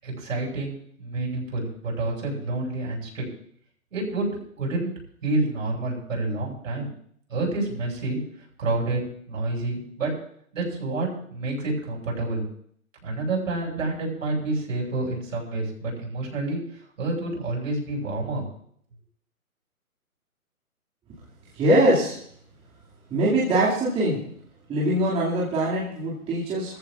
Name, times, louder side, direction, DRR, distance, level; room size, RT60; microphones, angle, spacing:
voice 1, 0.0-3.2 3.9-4.3 4.6-4.9 5.2-6.9 7.3-8.2 8.6-9.0 9.3-10.1 10.5-12.4 13.0-16.6 17.0-18.4, right 2 dB, 60° right, -1 dB, 6.4 m, -28 dB
voice 2, 21.5-22.2 23.1-24.2 24.7-26.8, right 1 dB, 15° right, -7 dB, 2.4 m, -22 dB
23.5 x 15.0 x 2.5 m, 0.63 s
hypercardioid pair, 150°, 44 cm